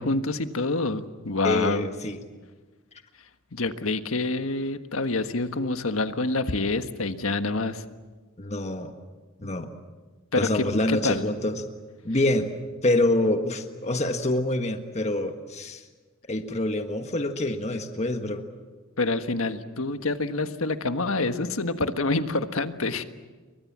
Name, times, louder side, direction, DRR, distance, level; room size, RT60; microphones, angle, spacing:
voice 1, 0.0-1.9 3.5-7.8 9.4-9.5 10.3-11.2 19.0-23.0, left 3 dB, 90° left, 8 dB, 1.5 m, -27 dB
voice 2, 1.4-2.2 8.4-8.9 9.4-9.7 10.4-11.6 12.0-12.5 12.8-15.8 16.3-18.5, left 1 dB, 35° left, 6 dB, 1.6 m, -26 dB
29.0 x 23.5 x 7.4 m, 1.3 s
head